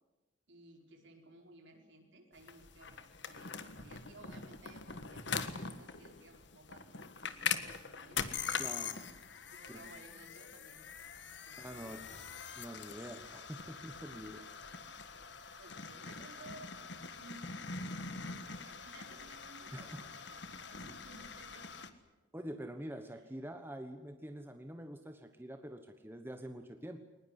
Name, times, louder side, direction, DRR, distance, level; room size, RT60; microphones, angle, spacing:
voice 1, 0.5-8.3 9.5-12.3 15.6-16.8 17.1-17.6 18.2-22.0 23.1-23.3, right 2 dB, 60° right, 3 dB, 5.1 m, -57 dB
sound 1, 2.4-21.9, left 6 dB, 55° left, 1.6 m, -43 dB
voice 2, 8.6-9.1 9.7-9.9 11.5-12.0 12.6-14.4 19.7-20.0 22.3-27.0, equal, 10° right, 6 dB, 1.2 m, -46 dB
22.0 x 20.0 x 10.0 m, 1.1 s
head